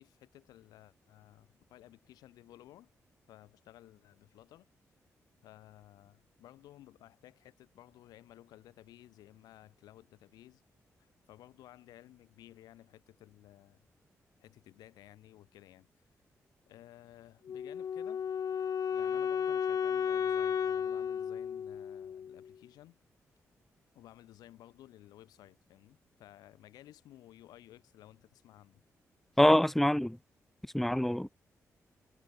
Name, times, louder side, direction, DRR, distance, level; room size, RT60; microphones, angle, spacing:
voice 1, 0.0-2.9 3.3-4.7 5.4-10.6 11.0-13.9 14.4-15.9 16.7-18.2 18.9-23.0 24.0-28.8, left 14 dB, 85° left, 3.3 m, -56 dB
Wind instrument woodwind instrument, 17.5-22.5, left 8 dB, 60° left, 0.6 m, -33 dB
voice 2, 29.4-30.2 30.7-31.3, left 1 dB, 5° left, 0.5 m, -25 dB
supercardioid pair, 45°, 6 cm